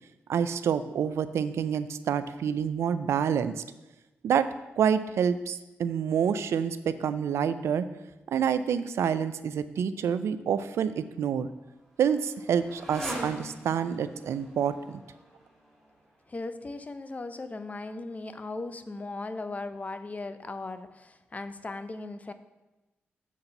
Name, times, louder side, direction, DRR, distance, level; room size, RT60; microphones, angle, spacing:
voice 1, 0.3-3.6 4.2-4.5 4.8-7.9 8.3-11.5 12.0-15.0, right 8 dB, 85° right, 12 dB, 0.3 m, -27 dB
Motorcycle, 11.0-16.3, equal, 5° left, 2.6 m, -43 dB
voice 2, 16.3-22.3, left 3 dB, 35° left, 10 dB, 0.5 m, -38 dB
7.3 x 3.9 x 5.6 m, 1.0 s
cardioid pair, 65°, 5 cm